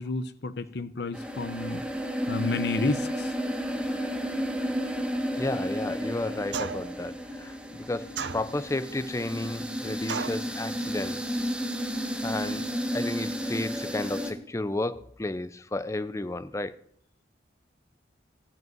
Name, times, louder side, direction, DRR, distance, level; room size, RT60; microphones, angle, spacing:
voice 1, 0.0-1.8 2.3-3.3, left 3 dB, 60° left, 0.7 m, -31 dB
sound 1, 1.1-14.3, equal, 5° right, 1.3 m, -32 dB
voice 2, 5.3-11.5 12.2-12.7 12.9-16.7, left 2 dB, 15° left, 0.5 m, -32 dB
sound 2, 6.5-7.0 8.2-8.8 10.1-10.5, right 6 dB, 70° right, 0.7 m, -34 dB
14.0 x 5.3 x 9.2 m
head